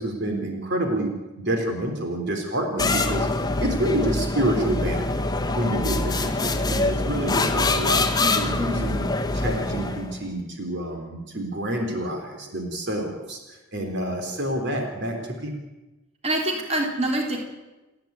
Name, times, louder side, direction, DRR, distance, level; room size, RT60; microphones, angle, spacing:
voice 1, 0.0-3.3 3.6-5.2 5.5-9.1 9.3-15.5, right 1 dB, 50° right, 3 dB, 3.5 m, -28 dB
sound 1, 2.8-10.2, left 2 dB, 15° left, 1.3 m, -24 dB
voice 2, 16.2-17.4, right 1 dB, 30° right, 0 dB, 3.9 m, -25 dB
29.5 x 10.5 x 9.5 m, 1.1 s
head